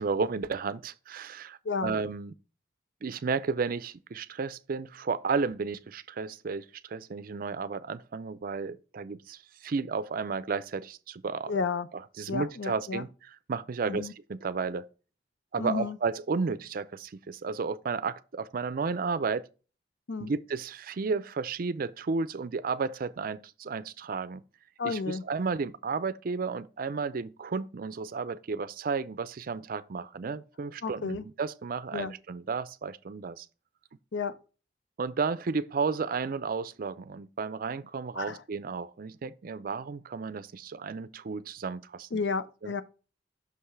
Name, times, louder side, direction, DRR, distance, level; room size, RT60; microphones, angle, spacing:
voice 1, 0.0-2.3 3.0-11.5 12.2-13.1 13.5-14.8 15.5-19.5 20.2-24.4 24.8-33.5 35.0-42.2 42.6-42.7, right 4 dB, 50° right, 0.4 m, -33 dB
voice 2, 11.5-11.9 12.3-13.0 13.8-14.1 15.6-16.0 20.1-20.3 24.8-25.2 30.8-31.2 31.9-32.1 34.1-34.3 38.1-38.4 42.1-42.8, left 4 dB, 80° left, 0.6 m, -32 dB
6.2 x 5.6 x 3.2 m
head